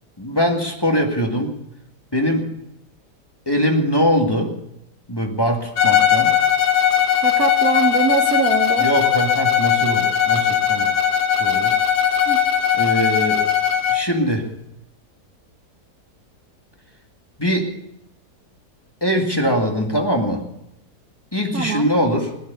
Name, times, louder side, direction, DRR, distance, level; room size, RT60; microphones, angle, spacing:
voice 1, 0.2-1.6 2.1-2.5 3.5-4.5 5.1-6.3 8.8-10.9 11.4-11.8 12.7-13.4 13.9-14.5 17.4-17.7 19.0-20.5 21.3-22.3, equal, 15° left, 2 dB, 1.8 m, -21 dB
Bowed string instrument, 5.8-14.1, left 9 dB, 70° left, 1.6 m, -18 dB
voice 2, 7.2-8.9 12.3-12.4 21.5-21.9, right 7 dB, 65° right, 8 dB, 1.3 m, -23 dB
17.5 x 12.0 x 6.8 m, 0.83 s
omnidirectional pair, 1.8 m